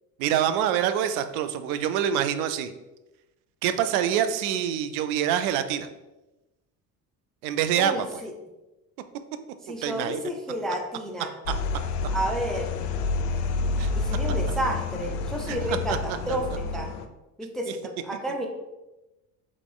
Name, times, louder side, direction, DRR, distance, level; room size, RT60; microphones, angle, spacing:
voice 1, 0.2-2.7 3.6-5.9 7.4-8.0 9.7-10.2 13.8-13.9 15.5-16.0 16.3-16.4 17.7-17.8, right 9 dB, 75° right, 10 dB, 0.5 m, -26 dB
voice 2, 7.8-8.3 9.6-11.3 12.1-12.7 14.0-16.9 17.4-18.5, right 1 dB, ahead, 2 dB, 0.5 m, -31 dB
sound 1, 11.5-17.1, left 3 dB, 80° left, 0.5 m, -29 dB
3.4 x 3.1 x 3.8 m, 1.0 s
hypercardioid pair, 70°, 45 cm